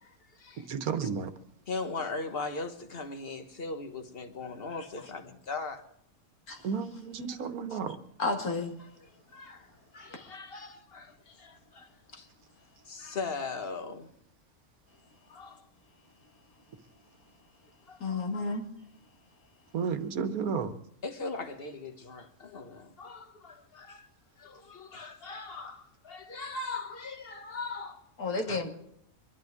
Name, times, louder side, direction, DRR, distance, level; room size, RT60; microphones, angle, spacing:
voice 1, 0.0-0.7 1.0-1.1 1.7-5.8 7.3-7.4 7.7-7.8 8.8-12.3 12.8-14.1 15.3-15.7 17.9-18.6 21.0-24.1 24.4-28.0 28.5-28.6, left 3 dB, 45° left, 1.5 m, -40 dB
voice 2, 0.7-1.3 6.6-8.0 19.7-20.7, right 6 dB, 80° right, 1.6 m, -32 dB
voice 3, 8.2-8.7 18.0-18.6 28.2-28.7, left 3 dB, 90° left, 2.7 m, -31 dB
23.5 x 11.5 x 4.8 m
omnidirectional pair, 1.5 m